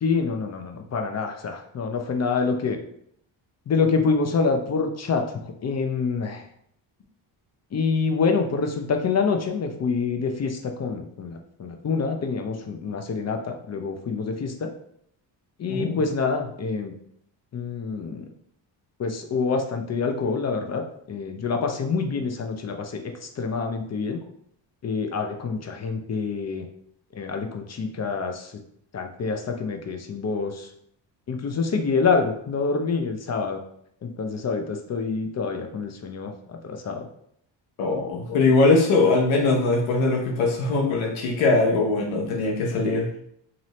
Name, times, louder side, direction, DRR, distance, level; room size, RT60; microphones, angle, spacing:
voice 1, 0.0-2.8 3.7-6.5 7.7-14.7 15.6-16.9 17.5-18.2 19.0-24.2 24.8-26.6 27.1-28.5 28.9-30.7 31.3-33.6 34.0-37.1, left 4 dB, 35° left, 4 dB, 0.6 m, -26 dB
voice 2, 37.8-43.1, left 3 dB, 90° left, 0 dB, 0.9 m, -21 dB
2.7 x 2.7 x 3.1 m, 0.69 s
cardioid pair, 75°, 47 cm